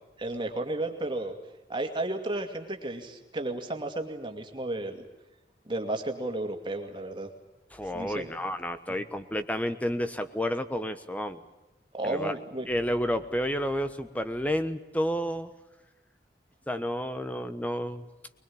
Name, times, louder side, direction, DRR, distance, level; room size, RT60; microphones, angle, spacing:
voice 1, 0.2-1.4 1.7-5.1 5.6-7.3 7.9-8.3 11.9-12.7, right 2 dB, 25° right, 4 dB, 2.5 m, -33 dB
voice 2, 7.7-11.4 12.0-12.3 12.7-15.5 16.7-18.0, equal, 10° left, 10 dB, 1.2 m, -30 dB
23.0 x 21.0 x 8.7 m, 1.1 s
head